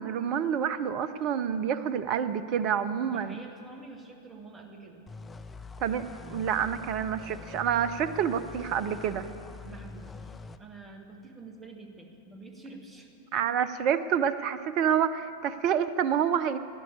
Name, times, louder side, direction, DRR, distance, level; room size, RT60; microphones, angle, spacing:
voice 1, 0.0-3.4 5.8-9.3 13.3-16.6, right 8 dB, 40° right, 13 dB, 0.6 m, -28 dB
voice 2, 3.0-5.0 9.6-13.1, right 3 dB, 15° right, 4 dB, 1.8 m, -47 dB
sound 1, 5.1-10.6, left 4 dB, 15° left, 0.6 m, -44 dB
17.0 x 10.5 x 7.1 m, 2.7 s
figure-of-eight pair, 90°, 0 cm